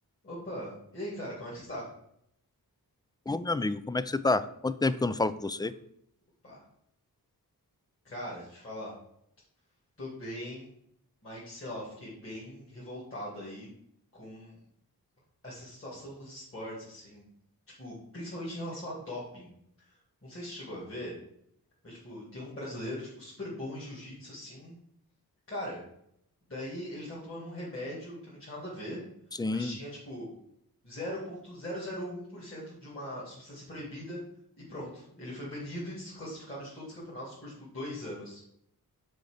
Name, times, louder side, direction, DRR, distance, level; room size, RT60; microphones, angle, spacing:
voice 1, 0.2-1.9 6.4-6.6 8.0-8.9 10.0-10.7 11.2-13.7 14.1-14.6 15.4-17.2 17.8-19.5 20.2-21.1 21.8-24.7 25.5-25.8 26.5-29.0 29.5-30.3 30.8-34.2 34.7-38.4, left 1 dB, 35° left, -6 dB, 2.8 m, -40 dB
voice 2, 3.3-5.7 29.4-29.8, left 3 dB, 10° left, 15 dB, 0.3 m, -29 dB
6.5 x 4.2 x 6.5 m, 0.74 s
wide cardioid pair, 85°, 38 cm